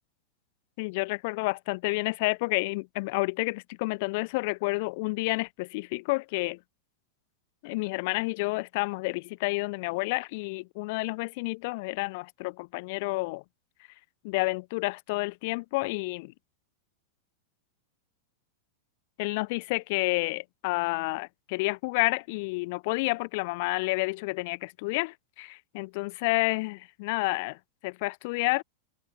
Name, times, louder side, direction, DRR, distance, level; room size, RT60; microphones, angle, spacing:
voice 1, 0.8-6.6 7.6-13.4 14.2-16.3 19.2-27.6 27.8-28.6, left 26 dB, 50° left, 0.9 m, -30 dB
figure-of-eight pair, 90°, 0 cm